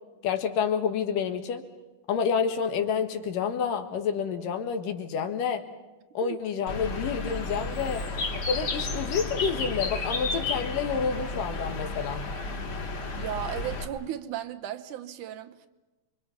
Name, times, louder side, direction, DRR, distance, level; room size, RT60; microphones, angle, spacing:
voice 1, 0.2-1.6 2.1-5.6 6.1-8.0 8.3-12.2, left 6 dB, 85° left, 3.3 m, -29 dB
Bird, 6.7-13.9, left 3 dB, 45° left, 3.0 m, -32 dB
voice 2, 13.2-15.7, right 11 dB, 75° right, 2.4 m, -35 dB
28.0 x 23.5 x 5.9 m
omnidirectional pair, 3.7 m